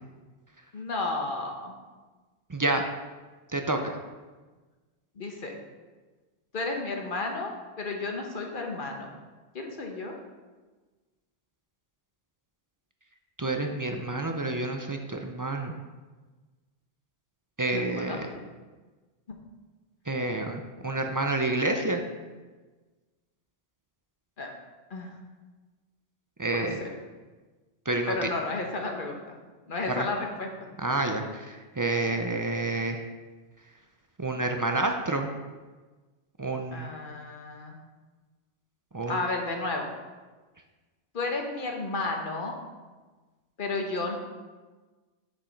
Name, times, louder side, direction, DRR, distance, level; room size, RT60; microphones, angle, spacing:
voice 1, 0.7-1.7 5.2-5.6 6.5-9.1 9.5-10.1 17.7-18.4 24.4-24.5 24.9-25.1 26.5-26.9 28.1-29.3 29.7-30.5 36.7-37.8 39.1-39.9 41.1-42.6 43.6-44.1, left 3 dB, 50° left, 2 dB, 1.2 m, -32 dB
voice 2, 2.5-2.9 3.5-4.0 13.4-15.8 17.6-18.3 20.1-22.0 26.4-26.8 27.9-28.3 29.9-30.1 30.8-33.0 34.2-35.3 36.4-36.9 38.9-39.2, right 2 dB, 30° right, 4 dB, 0.3 m, -29 dB
7.1 x 5.3 x 5.2 m, 1.3 s
omnidirectional pair, 1.1 m